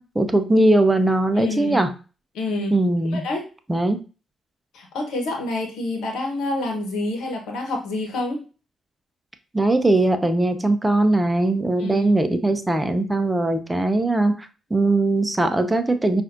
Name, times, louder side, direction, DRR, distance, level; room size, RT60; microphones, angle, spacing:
voice 1, 0.0-1.9 2.7-3.2 3.7-4.0 9.5-16.2, right 2 dB, 15° right, 8 dB, 0.7 m, -20 dB
voice 2, 1.3-1.8 2.3-2.8 3.1-3.4 4.7-8.4 11.8-12.1, left 2 dB, 75° left, 2 dB, 1.1 m, -27 dB
5.6 x 2.6 x 2.6 m, 0.34 s
hypercardioid pair, 45°, 0 cm